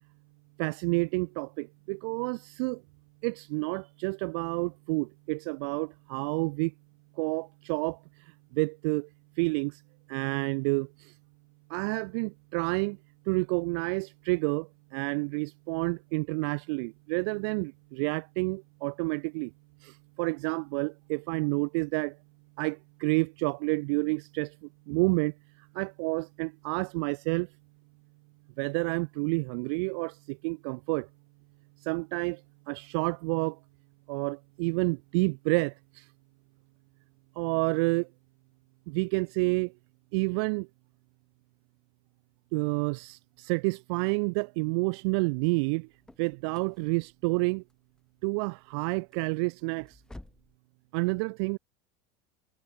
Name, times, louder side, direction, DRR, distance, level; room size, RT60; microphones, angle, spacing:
voice 1, 0.6-2.8 3.2-6.7 7.2-8.0 8.5-9.1 9.4-9.8 10.1-11.1 11.7-13.0 13.3-19.5 19.8-22.2 22.6-25.3 25.7-27.5 28.6-31.1 31.8-32.4 32.7-33.6 34.1-36.0 37.4-38.1 38.9-39.7 40.1-40.7 42.5-45.9 46.2-47.6 48.2-49.9 50.9-51.6, right 31 dB, 75° right, 1.3 m, -29 dB
sound 1, 45.6-50.6, left 1 dB, 5° left, 3.6 m, -54 dB
cardioid pair, 160°, 14 cm